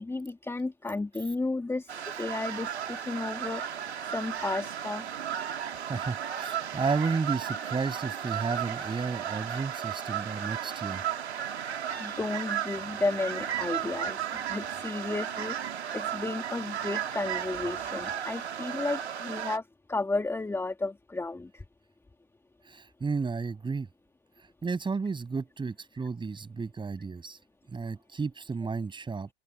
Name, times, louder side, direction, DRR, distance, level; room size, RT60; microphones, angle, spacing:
voice 1, 0.0-3.6 4.0-5.1 11.9-15.6 15.9-21.6, left 3 dB, 10° left, 2.7 m, -33 dB
sound 1, 1.9-19.6, right 9 dB, 85° right, 2.7 m, -34 dB
voice 2, 5.9-11.0 22.7-23.9 24.6-27.4 27.7-29.3, right 4 dB, 15° right, 7.0 m, -32 dB
open air
hypercardioid pair, 100°, 32 cm